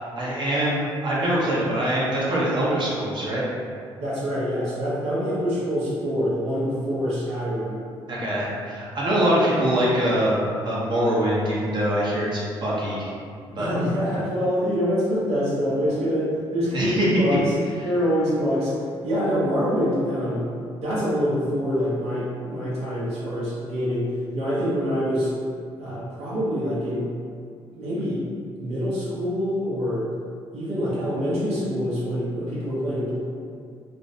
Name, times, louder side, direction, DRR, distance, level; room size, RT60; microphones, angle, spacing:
voice 1, 0.1-3.4 8.1-13.1 13.6-13.7 16.7-17.1, right 1 dB, 45° right, -6 dB, 0.7 m, -23 dB
voice 2, 4.0-7.8 13.6-17.5 17.8-18.8 19.0-20.5 20.8-25.3 25.8-27.1 27.7-28.2 28.6-30.1 30.5-33.2, equal, 85° right, -9 dB, 0.7 m, -25 dB
2.5 x 2.0 x 2.6 m, 2.3 s
cardioid pair, 80°, 11 cm